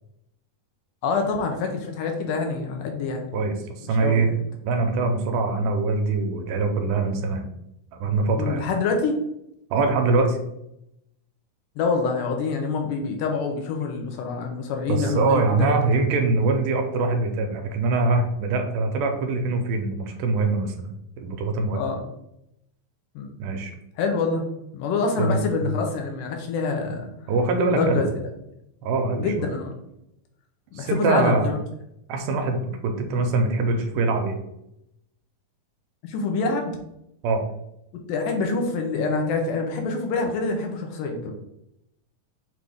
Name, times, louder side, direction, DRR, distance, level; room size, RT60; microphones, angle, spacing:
voice 1, 1.0-3.3 4.0-4.3 8.4-9.2 11.8-15.8 21.7-22.0 23.2-23.3 24.0-24.4 24.7-27.1 27.7-28.1 29.2-29.7 30.7-31.6 36.0-36.8 38.1-41.3, left 4 dB, 80° left, 3 dB, 2.2 m, -26 dB
voice 2, 3.3-4.3 4.6-7.5 7.9-8.7 9.7-10.4 14.9-21.8 23.4-23.7 25.2-25.8 27.3-28.1 28.8-29.5 30.7-31.5 32.1-34.4 37.2-37.4, right 3 dB, 80° right, 4 dB, 2.1 m, -23 dB
6.0 x 2.5 x 3.4 m, 0.81 s
omnidirectional pair, 3.9 m